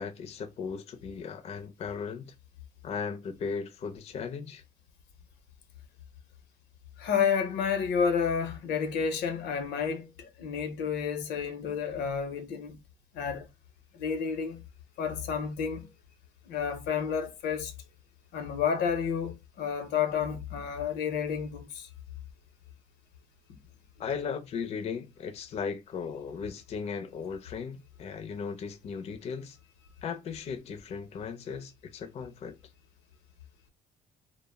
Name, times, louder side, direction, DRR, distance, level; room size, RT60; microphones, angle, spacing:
voice 1, 0.0-2.3 2.8-4.6 24.0-29.6 30.0-32.6, left 6 dB, 40° left, 0.4 m, -37 dB
voice 2, 7.0-12.8 13.1-13.5 13.9-14.6 15.0-15.9 16.5-17.7 18.3-21.9, left 7 dB, 85° left, 0.6 m, -30 dB
2.0 x 2.0 x 3.3 m
cardioid pair, 110°, 17 cm